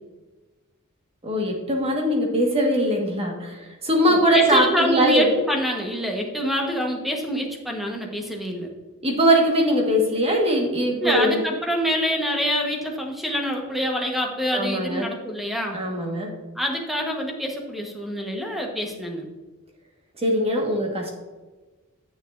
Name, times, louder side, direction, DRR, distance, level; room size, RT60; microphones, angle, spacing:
voice 1, 1.2-5.3 9.0-11.4 14.5-15.0 15.7-16.3 20.2-21.1, equal, 25° right, 0 dB, 1.6 m, -21 dB
voice 2, 4.1-8.7 11.0-15.8 16.5-19.3, equal, ahead, 1 dB, 1.2 m, -26 dB
9.9 x 7.4 x 2.6 m, 1.2 s
head